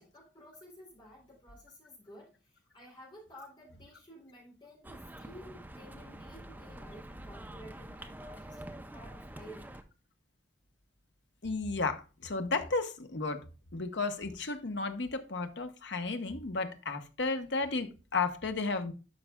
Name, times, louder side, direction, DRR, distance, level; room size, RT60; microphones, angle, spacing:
voice 1, 0.0-9.8, equal, 25° left, -4 dB, 3.4 m, -53 dB
sound 1, 4.8-9.8, right 1 dB, 10° right, 0.6 m, -46 dB
voice 2, 11.4-13.4 13.7-18.9, left 3 dB, 65° left, 8 dB, 1.0 m, -33 dB
11.5 x 5.5 x 2.3 m, 0.33 s
head